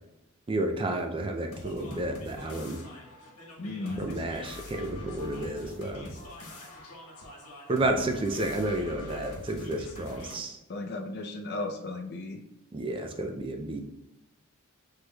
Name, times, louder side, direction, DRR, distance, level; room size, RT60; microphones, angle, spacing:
voice 1, 0.5-2.8 4.0-6.1 7.7-10.6 12.7-13.8, right 1 dB, 25° right, 4 dB, 0.4 m, -31 dB
sound 1, 1.5-10.4, left 1 dB, 85° left, 1.2 m, -45 dB
voice 2, 3.6-4.0 10.7-12.4, left 2 dB, 50° left, 3 dB, 0.6 m, -35 dB
6.0 x 3.2 x 2.2 m, 0.91 s
head